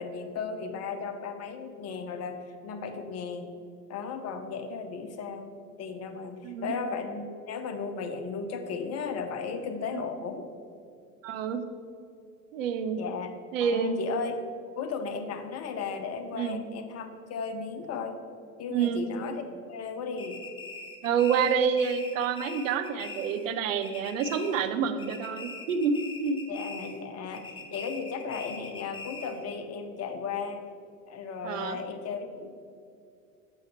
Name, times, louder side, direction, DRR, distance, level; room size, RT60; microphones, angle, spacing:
voice 1, 0.0-3.5 3.9-5.5 5.8-10.5 13.0-13.3 13.6-14.3 14.8-18.1 18.6-19.4 19.7-20.4 26.5-30.6 31.1-32.5, left 5 dB, 35° left, 6 dB, 1.0 m, -35 dB
voice 2, 11.2-11.6 12.5-13.0 13.5-14.0 16.3-16.6 18.7-19.0 21.0-26.4 31.4-31.8, right 6 dB, 65° right, 7 dB, 0.8 m, -28 dB
sound 1, 20.2-23.6 23.8-24.7 25.0-27.0 27.3-29.5, left 3 dB, 10° left, 1.1 m, -42 dB
7.4 x 6.4 x 4.4 m, 2.4 s
figure-of-eight pair, 75°, 42 cm